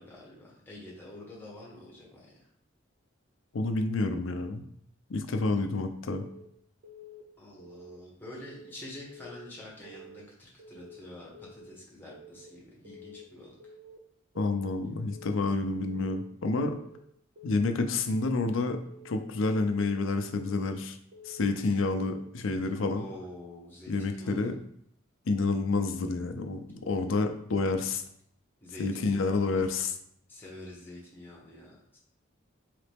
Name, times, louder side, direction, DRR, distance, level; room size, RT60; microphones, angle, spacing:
voice 1, 0.0-2.3 7.4-13.6 22.9-24.5 28.6-29.6 30.3-32.0, left 1 dB, 10° left, -5 dB, 1.2 m, -47 dB
voice 2, 3.5-4.6 5.1-6.2 14.4-16.8 17.4-18.8 19.0-21.0 21.3-23.1 23.9-24.6 25.3-28.0 28.8-29.9, left 3 dB, 75° left, 7 dB, 0.5 m, -29 dB
Keyboard (musical) / Alarm, 6.1-6.5 6.8-7.2 7.6-8.0 8.3-8.7 9.1-9.5 9.8-10.2 10.6-11.0 11.3-11.7 12.1-12.5 12.8-13.2 13.6-14.0 14.4-14.7 15.1-15.5 15.9-16.2 16.6-17.0 17.4-17.7 18.1-18.5 18.9-19.2 19.6-20.0 20.4-20.7 21.1-21.5 21.9-22.3, left 1 dB, 65° right, 0.7 m, -50 dB
4.0 x 3.2 x 3.4 m, 0.69 s
head